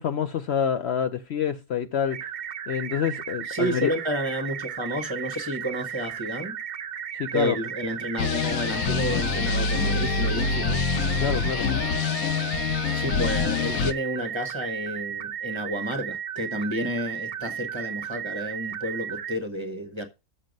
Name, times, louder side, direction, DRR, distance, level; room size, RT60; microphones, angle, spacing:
voice 1, 0.0-2.2 2.7-3.9 7.2-7.6 11.2-11.7, left 8 dB, 60° left, 0.8 m, -27 dB
sound 1, 2.1-19.4, right 9 dB, 55° right, 0.5 m, -35 dB
voice 2, 3.5-6.6 7.3-10.8 12.9-20.1, equal, 20° right, 0.9 m, -31 dB
sound 2, 8.2-13.9, left 5 dB, 85° left, 1.2 m, -26 dB
7.6 x 6.5 x 5.1 m
omnidirectional pair, 1.5 m